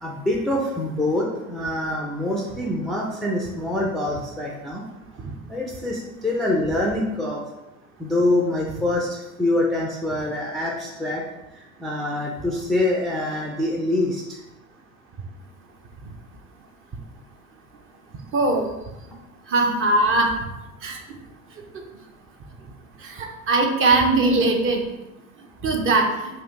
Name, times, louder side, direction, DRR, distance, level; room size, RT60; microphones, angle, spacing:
voice 1, 0.0-4.8 5.5-7.4 8.0-11.2 11.6-14.2, left 1 dB, ahead, -3 dB, 0.4 m, -25 dB
voice 2, 18.3-18.7 19.5-20.3 20.8-21.0 23.0-24.8 25.6-26.1, right 3 dB, 30° right, 2 dB, 0.7 m, -20 dB
4.2 x 2.5 x 3.6 m, 0.98 s
figure-of-eight pair, 70°, 43 cm